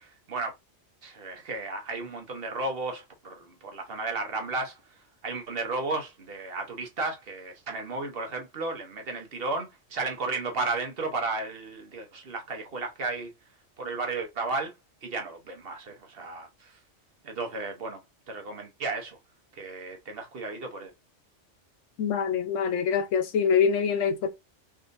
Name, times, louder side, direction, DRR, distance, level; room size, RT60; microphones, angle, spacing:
voice 1, 1.0-4.7 5.2-13.3 13.8-14.7 15.0-16.5 17.2-18.0 18.3-19.2 19.6-20.9, right 3 dB, 55° right, 1.0 m, -33 dB
voice 2, 22.0-24.3, left 6 dB, 85° left, 1.0 m, -25 dB
3.5 x 2.7 x 2.5 m
omnidirectional pair, 1.2 m